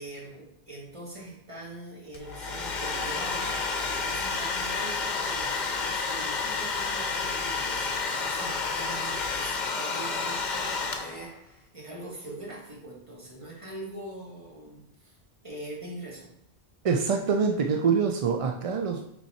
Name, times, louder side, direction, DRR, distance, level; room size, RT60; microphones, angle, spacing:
voice 1, 0.0-15.2 15.4-16.3, right 1 dB, 30° right, -3 dB, 1.6 m, -42 dB
Domestic sounds home sounds, 2.1-11.3, left 4 dB, 50° left, 0.8 m, -30 dB
voice 2, 16.8-19.1, right 5 dB, 50° right, 3 dB, 0.4 m, -25 dB
5.5 x 4.7 x 4.2 m, 0.76 s
omnidirectional pair, 1.1 m